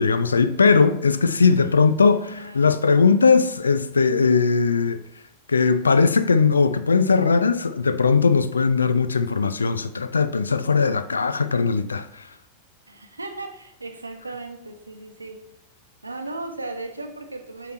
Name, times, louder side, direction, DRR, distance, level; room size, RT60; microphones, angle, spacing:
voice 1, 0.0-5.0 5.5-12.3, left 5 dB, 75° left, 0.3 m, -19 dB
voice 2, 2.1-2.7 12.9-15.4 16.0-17.7, right 2 dB, 80° right, 0.7 m, -36 dB
8.2 x 3.0 x 4.3 m
figure-of-eight pair, 90°, 0 cm